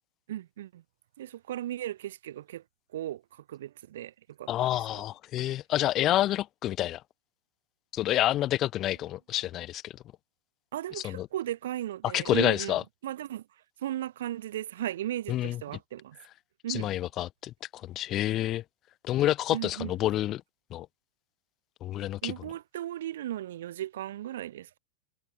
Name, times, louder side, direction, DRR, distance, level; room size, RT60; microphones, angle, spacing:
voice 1, 0.3-0.8 1.2-2.6 2.9-5.0 10.7-13.5 13.8-16.2 16.6-16.9 19.5-20.0 22.2-24.8, right 12 dB, 60° right, 0.7 m, -36 dB
voice 2, 4.5-7.0 7.9-9.9 11.0-11.3 12.1-12.8 15.3-15.6 16.7-17.5 17.8-18.6 19.1-20.4 20.7-20.9 21.8-22.3, left 14 dB, 35° left, 0.4 m, -28 dB
figure-of-eight pair, 90°, 0 cm